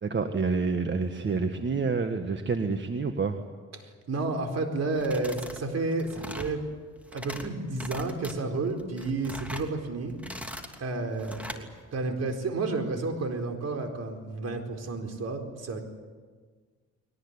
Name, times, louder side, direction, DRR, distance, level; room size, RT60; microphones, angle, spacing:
voice 1, 0.0-3.4, right 4 dB, 40° right, 6 dB, 1.6 m, -28 dB
voice 2, 3.8-6.6 7.1-10.1 10.8-11.7 11.9-15.8, right 3 dB, 55° right, 4 dB, 4.3 m, -31 dB
sound 1, 4.9-5.6 5.9-6.6 7.0-7.5 7.8-8.3 8.8-9.7 10.1-10.8 11.2-11.6, equal, 5° right, 3.0 m, -40 dB
22.0 x 19.5 x 9.8 m, 1.5 s
cardioid pair, 90°, 30 cm